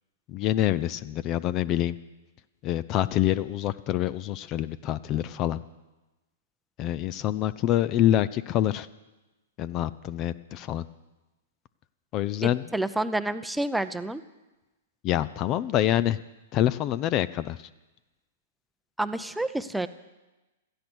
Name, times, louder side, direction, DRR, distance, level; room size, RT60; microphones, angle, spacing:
voice 1, 0.3-1.9 2.6-5.6 6.8-8.9 9.6-10.8 12.1-12.6 15.0-16.2 16.5-17.7, left 12 dB, 35° left, 17 dB, 0.5 m, -26 dB
voice 2, 12.4-14.2 19.0-19.9, right 1 dB, 5° right, 11 dB, 0.7 m, -29 dB
17.0 x 13.5 x 6.3 m, 1.1 s
hypercardioid pair, 120°, 0 cm